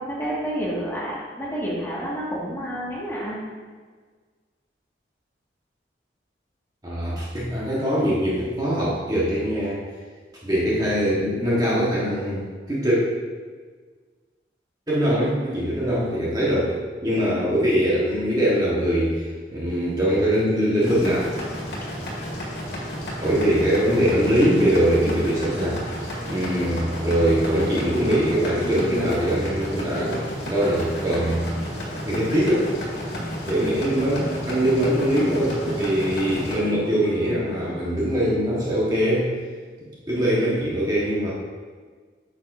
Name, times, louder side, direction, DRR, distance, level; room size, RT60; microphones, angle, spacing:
voice 1, 0.1-3.4, equal, 15° left, -7 dB, 1.7 m, -29 dB
voice 2, 6.8-9.8 10.4-13.0 14.9-16.7 17.0-21.2 23.2-31.5 32.0-32.7 33.4-39.3 40.1-41.3, equal, 20° right, -6 dB, 1.3 m, -22 dB
sound 1, 20.8-36.6, equal, 65° left, 2.0 m, -32 dB
sound 2, 26.8-37.8, equal, 70° right, 1.2 m, -39 dB
9.3 x 6.2 x 2.6 m, 1.5 s
head